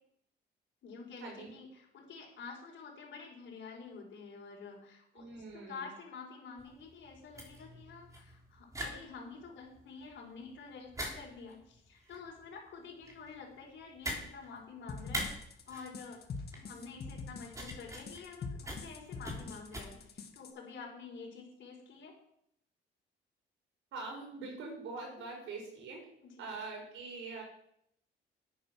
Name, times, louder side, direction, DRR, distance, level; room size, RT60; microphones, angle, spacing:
voice 1, 0.8-15.3 15.7-16.2 16.5-22.2 25.2-25.3 26.2-26.5, left 5 dB, 70° left, -2 dB, 4.2 m, -49 dB
voice 2, 5.1-5.9 23.9-26.1 26.4-27.4, right 3 dB, 80° right, 1 dB, 4.9 m, -43 dB
sound 1, 6.6-19.8, equal, 15° right, 3.7 m, -44 dB
sound 2, 14.9-20.5, left 4 dB, 55° left, 1.7 m, -44 dB
9.6 x 9.0 x 6.1 m, 0.73 s
cardioid pair, 90°, 20 cm